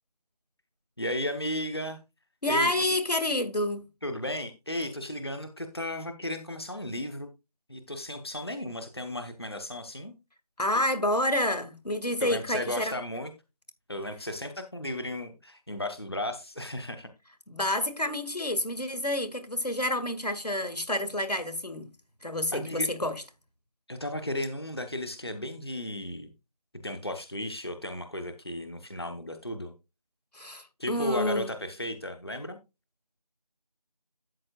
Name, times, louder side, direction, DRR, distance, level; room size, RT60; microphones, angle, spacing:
voice 1, 1.0-2.0 2.5-2.9 4.0-7.3 7.7-10.1 12.2-13.3 13.9-17.1 22.5-22.9 23.9-26.3 26.8-29.7 30.8-32.6, left 1 dB, 40° left, 1.0 m, -34 dB
voice 2, 2.4-3.9 10.6-13.0 17.5-21.9 22.2-23.2 30.3-31.5, left 1 dB, 75° left, 2.0 m, -29 dB
13.0 x 8.6 x 2.3 m
figure-of-eight pair, 175°, 21 cm